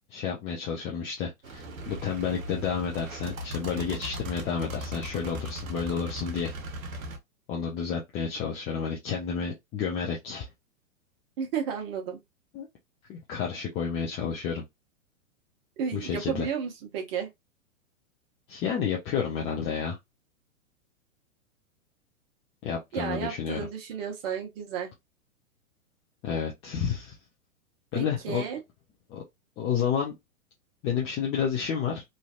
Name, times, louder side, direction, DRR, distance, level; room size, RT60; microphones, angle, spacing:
voice 1, 0.1-6.5 6.9-7.0 7.5-10.4 12.5-12.7 13.1-14.6 15.9-16.5 18.5-20.0 22.6-23.7 26.2-27.1 27.9-28.4 29.1-29.2 29.6-30.1 30.8-32.0, left 7 dB, 15° left, 0.4 m, -30 dB
sound 1, 1.4-7.2, equal, 80° right, 1.0 m, -38 dB
voice 2, 11.4-12.2 15.8-17.3 22.9-24.9 27.9-28.6, right 7 dB, 45° right, 1.2 m, -33 dB
3.1 x 2.6 x 2.3 m
hypercardioid pair, 115°, 40 cm